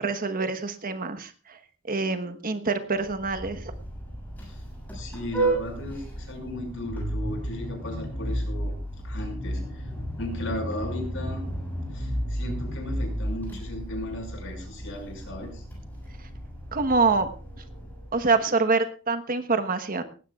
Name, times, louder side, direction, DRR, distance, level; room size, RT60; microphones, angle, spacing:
voice 1, 0.0-1.6 1.9-3.6 16.7-17.3 18.1-20.0, right 4 dB, 45° right, 9 dB, 1.2 m, -25 dB
Vehicle horn car horn honking, 3.0-18.3, right 1 dB, 10° left, 7.2 m, -33 dB
voice 2, 4.9-8.7 9.0-9.9 10.2-11.4 11.9-15.6, left 1 dB, 65° left, 3 dB, 5.8 m, -36 dB
19.0 x 16.0 x 2.4 m, 0.37 s
head